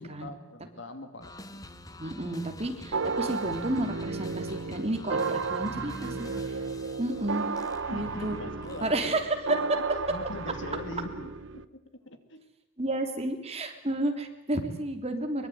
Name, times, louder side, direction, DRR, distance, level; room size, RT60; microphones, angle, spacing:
voice 1, 0.0-1.6 7.8-9.1 9.9-11.3 12.1-12.4, left 1 dB, 65° left, 8 dB, 2.7 m, -41 dB
sound 1, 1.2-9.3, left 1 dB, 20° left, 1.3 m, -46 dB
voice 2, 2.0-6.2 7.0-7.4 7.9-8.4 8.8-9.8 12.8-15.5, right 1 dB, 30° right, 5 dB, 3.1 m, -31 dB
sound 2, 2.9-11.6, right 4 dB, 80° right, 1.1 m, -34 dB
23.5 x 22.5 x 9.4 m, 0.87 s
head